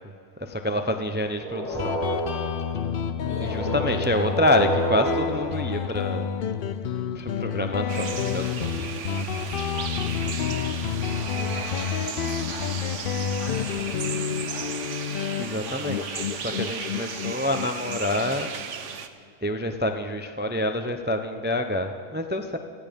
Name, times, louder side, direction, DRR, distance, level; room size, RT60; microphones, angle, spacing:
voice 1, 0.4-1.9 3.4-6.3 7.1-8.7 15.4-18.5 19.4-22.6, left 1 dB, 10° right, 6 dB, 0.5 m, -27 dB
sound 1, 1.4-6.7 11.0-12.7, right 1 dB, 30° left, 1.9 m, -32 dB
Guitar, 1.8-19.0, left 8 dB, 60° left, 0.6 m, -30 dB
voice 2, 3.2-4.2 9.3-14.9 16.7-17.3, left 2 dB, 80° left, -3 dB, 3.8 m, -43 dB
sound 2, 7.9-19.1, right 7 dB, 60° right, 1.2 m, -35 dB
18.5 x 14.5 x 5.3 m, 2.2 s
omnidirectional pair, 1.5 m